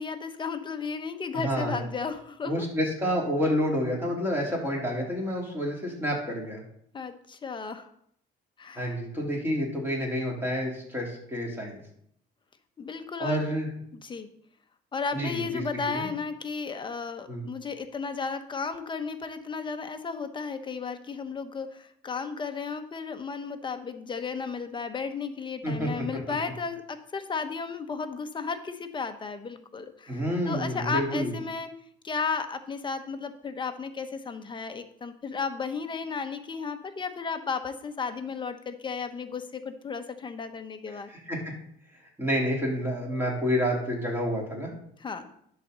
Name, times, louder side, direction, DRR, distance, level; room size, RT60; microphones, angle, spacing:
voice 1, 0.0-2.6 6.9-7.9 8.6-9.0 12.8-13.5 13.9-14.3 14.9-31.7 32.0-41.1 45.0-45.3, left 5 dB, 30° left, 8 dB, 1.0 m, -34 dB
voice 2, 1.3-1.9 2.4-6.6 8.7-11.8 13.2-13.7 15.1-15.6 15.9-16.1 17.3-17.4 25.6-25.9 30.1-31.3 40.9-41.5 42.2-44.7, equal, 15° right, -2 dB, 3.5 m, -29 dB
10.5 x 4.2 x 6.8 m, 0.69 s
cardioid pair, 110°, 17 cm